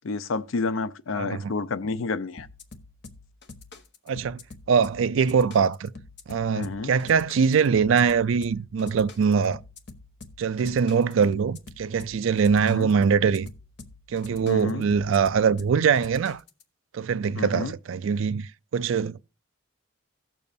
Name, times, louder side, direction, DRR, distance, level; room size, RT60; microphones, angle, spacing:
voice 1, 0.0-2.5 6.6-6.9 12.7-12.9 14.5-14.8 17.4-17.7, left 3 dB, 80° left, 0.5 m, -29 dB
voice 2, 1.1-1.5 4.1-4.4 4.7-5.9 6.3-9.6 10.4-13.5 14.1-16.4 16.9-19.2, right 6 dB, 75° right, 0.4 m, -23 dB
sound 1, 2.4-16.6, left 3 dB, 55° left, 0.9 m, -46 dB
17.0 x 6.9 x 2.6 m
head